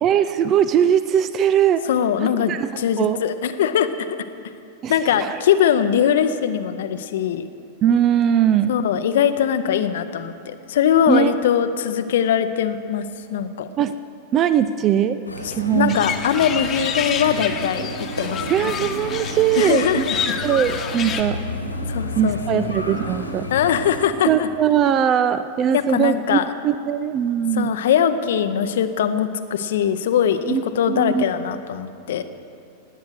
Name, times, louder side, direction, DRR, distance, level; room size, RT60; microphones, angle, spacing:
voice 1, 0.0-1.8 2.2-2.7 3.0-3.2 4.8-4.9 5.2-5.4 7.8-8.7 11.1-11.3 13.8-13.9 14.3-15.2 15.6-16.0 18.5-20.0 20.4-21.4 22.2-23.5 24.3-27.8 30.5-30.6 30.9-31.3, right 9 dB, 30° right, 13 dB, 0.4 m, -20 dB
voice 2, 1.9-3.9 4.9-7.5 8.7-13.7 15.7-18.7 19.6-20.4 21.9-22.7 23.5-24.5 25.7-26.4 27.5-32.2, left 9 dB, 60° left, 10 dB, 0.7 m, -21 dB
sound 1, 15.3-24.1, left 1 dB, 85° left, 1.6 m, -31 dB
sound 2, 15.9-21.2, left 7 dB, 25° left, 1.1 m, -29 dB
18.5 x 9.2 x 6.6 m, 2.5 s
figure-of-eight pair, 90°, 0 cm